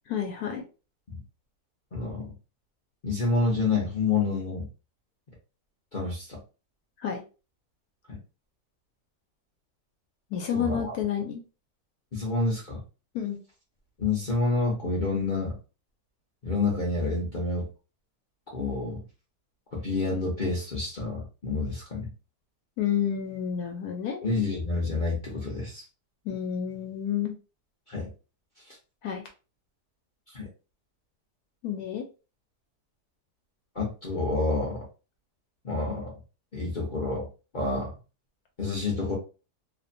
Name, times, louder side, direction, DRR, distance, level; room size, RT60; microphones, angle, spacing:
voice 1, 0.1-0.6 7.0-7.2 10.3-11.4 13.1-13.4 22.8-24.2 26.2-27.3 29.0-29.2 31.6-32.0, left 8 dB, 70° left, 2 dB, 1.0 m, -30 dB
voice 2, 1.9-2.4 3.0-4.7 5.9-6.4 8.1-8.2 10.5-10.9 12.1-12.8 14.0-15.5 16.4-17.7 18.5-19.0 19.7-22.1 24.2-25.8 27.9-28.1 28.7-28.8 30.3-30.5 33.7-34.9 35.6-36.1 36.5-37.3 37.5-37.9 38.6-39.1, left 3 dB, 50° left, -5 dB, 0.6 m, -28 dB
2.8 x 2.1 x 2.5 m, 0.32 s
omnidirectional pair, 1.8 m